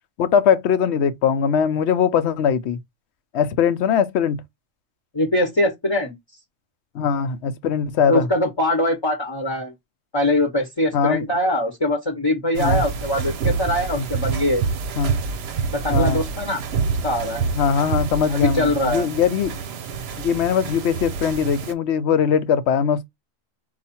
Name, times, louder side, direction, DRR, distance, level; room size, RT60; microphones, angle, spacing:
voice 1, 0.2-2.8 3.3-4.4 6.9-8.3 10.9-11.2 12.5-12.8 14.0-14.1 15.0-15.1 15.9-16.2 17.6-19.6 20.2-23.1, left 7 dB, 65° left, 0.8 m, -21 dB
voice 2, 5.1-6.1 8.0-9.7 10.1-14.6 15.7-16.6 17.0-17.4 18.3-19.1, left 1 dB, 25° left, 0.9 m, -22 dB
sound 1, 12.5-21.7, right 5 dB, 65° right, 0.8 m, -27 dB
4.8 x 2.4 x 4.2 m
omnidirectional pair, 1.3 m